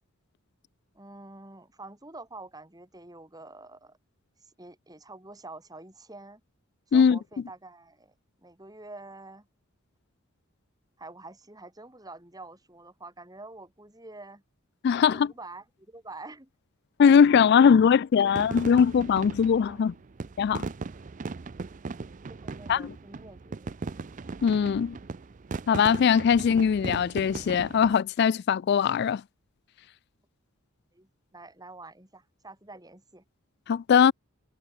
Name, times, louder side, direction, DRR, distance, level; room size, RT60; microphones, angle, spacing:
voice 1, 0.9-4.0 4.6-6.4 6.9-8.1 8.4-9.5 11.0-14.4 14.9-16.5 19.7-19.9 22.2-24.0 30.9-33.2, right 2 dB, 20° right, 4.9 m, -47 dB
voice 2, 14.8-15.3 17.0-19.9 20.4-20.6 22.7-22.9 24.4-25.0 25.7-29.2 33.7-34.1, left 7 dB, 55° left, 0.3 m, -21 dB
sound 1, 18.3-27.9, right 4 dB, 40° right, 0.5 m, -38 dB
head